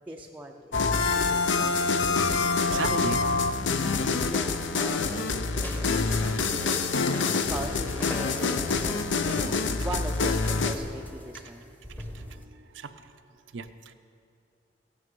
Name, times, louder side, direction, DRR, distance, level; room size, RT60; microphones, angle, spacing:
voice 1, 0.1-3.4 4.2-6.8 7.5-9.5 9.8-11.7, right 1 dB, 10° right, 1 dB, 0.5 m, -41 dB
sound 1, 0.7-10.8, left 4 dB, 75° left, 0.6 m, -26 dB
sound 2, 2.0-10.0, right 2 dB, 45° left, 1.5 m, -47 dB
voice 2, 2.7-3.2 12.0-12.4 12.7-12.9 13.5-13.7, right 5 dB, 75° right, 9 dB, 0.6 m, -35 dB
sound 3, 5.6-12.4, left 1 dB, 10° left, 0.9 m, -40 dB
15.5 x 9.5 x 5.3 m, 2.5 s
head